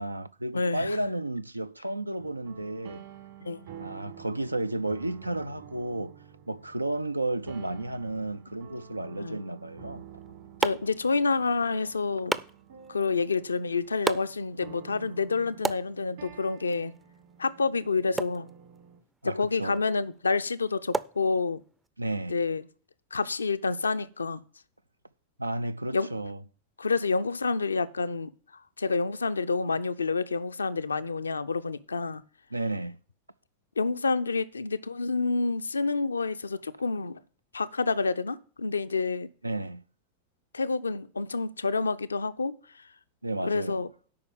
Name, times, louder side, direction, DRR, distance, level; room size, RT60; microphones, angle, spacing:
voice 1, 0.0-3.0 3.8-6.2 6.5-10.0 19.2-19.8 22.0-22.4 25.4-26.4 32.5-33.0 39.4-39.8 43.2-43.8, right 1 dB, 85° right, 0.4 m, -32 dB
voice 2, 0.5-1.0 3.4-3.7 9.2-9.4 10.6-12.4 12.9-16.9 17.4-18.5 19.2-21.6 22.3-22.6 23.1-24.4 25.9-26.1 26.8-32.2 33.8-37.2 37.5-39.3 40.5-42.9 43.4-43.9, left 4 dB, 75° left, 0.5 m, -28 dB
sound 1, 2.2-19.0, right 9 dB, 55° right, 1.7 m, -50 dB
sound 2, 9.9-21.9, right 3 dB, 10° right, 0.5 m, -38 dB
8.6 x 5.5 x 7.8 m
figure-of-eight pair, 90°, 0 cm